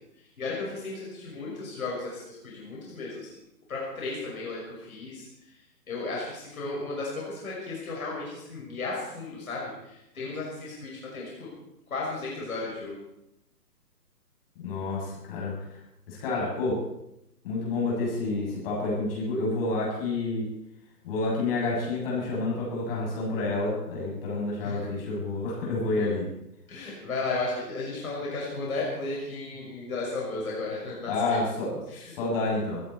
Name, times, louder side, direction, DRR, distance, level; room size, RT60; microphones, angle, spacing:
voice 1, 0.4-3.3 3.7-5.5 5.9-11.5 11.9-13.0 24.6-24.9 26.0-26.1 26.7-31.4 31.9-32.1, left 3 dB, 60° left, -4 dB, 6.2 m, -34 dB
voice 2, 14.6-15.8 16.1-16.8 17.4-20.5 21.0-26.3 31.0-31.8 32.1-32.8, left 2 dB, 35° left, -3 dB, 7.9 m, -29 dB
25.0 x 12.0 x 4.5 m, 0.85 s
figure-of-eight pair, 130°, 48 cm